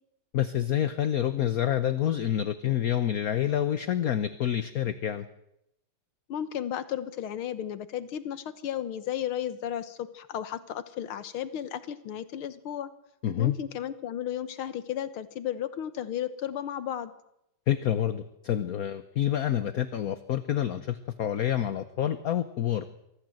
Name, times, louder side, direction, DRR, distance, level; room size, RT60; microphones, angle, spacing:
voice 1, 0.3-5.3 13.2-13.6 17.7-22.9, left 11 dB, 55° left, 12 dB, 1.0 m, -28 dB
voice 2, 6.3-12.9 13.4-17.1, left 10 dB, 75° left, 13 dB, 1.9 m, -34 dB
24.5 x 15.0 x 7.8 m, 0.81 s
omnidirectional pair, 2.4 m